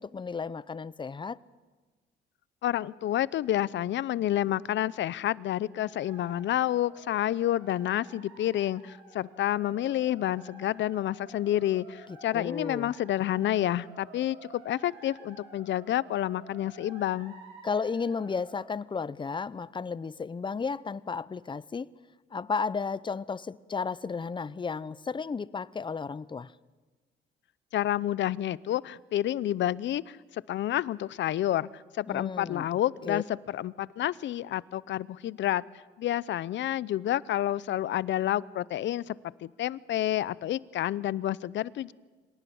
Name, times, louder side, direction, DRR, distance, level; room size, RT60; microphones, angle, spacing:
voice 1, 0.0-1.4 12.1-12.9 17.6-21.9 22.3-26.5 32.1-32.7 33.0-33.2, left 5 dB, 25° left, 0.6 m, -33 dB
voice 2, 2.6-17.4 27.7-35.6 36.0-39.2 39.4-41.9, left 12 dB, 70° left, 0.6 m, -29 dB
sound 1, 5.4-18.6, right 4 dB, 90° right, 6.0 m, -52 dB
25.5 x 18.5 x 7.1 m
cardioid pair, 90°, 20 cm